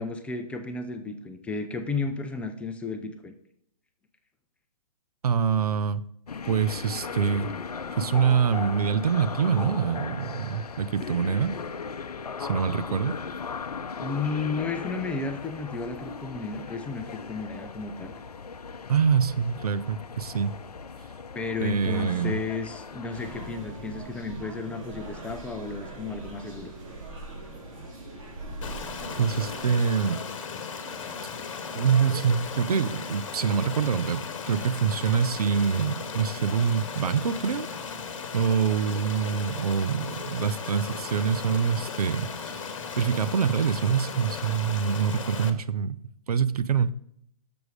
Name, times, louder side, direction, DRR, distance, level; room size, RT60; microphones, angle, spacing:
voice 1, 0.0-3.3 14.0-18.1 21.3-26.7, left 4 dB, 5° left, 0.4 m, -33 dB
voice 2, 5.2-6.0 6.5-7.5 8.0-11.6 12.4-13.1 18.9-20.5 21.6-22.4 29.2-30.2 31.7-37.7 38.3-42.6 43.0-46.0 46.3-46.9, right 7 dB, 75° right, 0.6 m, -25 dB
sound 1, 6.3-23.5, left 5 dB, 85° left, 0.6 m, -38 dB
sound 2, 23.1-29.6, right 2 dB, 60° right, 3.1 m, -41 dB
Stream, 28.6-45.5, left 5 dB, 55° left, 1.0 m, -36 dB
7.0 x 6.1 x 4.8 m
hypercardioid pair, 130°, 19 cm